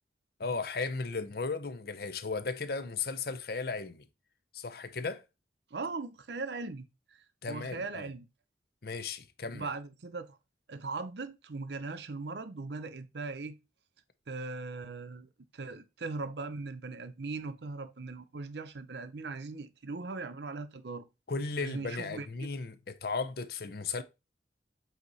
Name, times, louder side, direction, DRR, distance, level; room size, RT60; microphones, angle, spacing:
voice 1, 0.4-4.0 4.5-5.2 7.4-8.1 8.8-9.7 21.3-24.0, left 4 dB, 60° left, 0.7 m, -35 dB
voice 2, 5.7-7.2 7.5-8.3 9.5-10.4 10.7-13.5 14.3-21.1 21.6-22.3, right 3 dB, 70° right, 0.7 m, -39 dB
8.1 x 2.9 x 4.1 m
head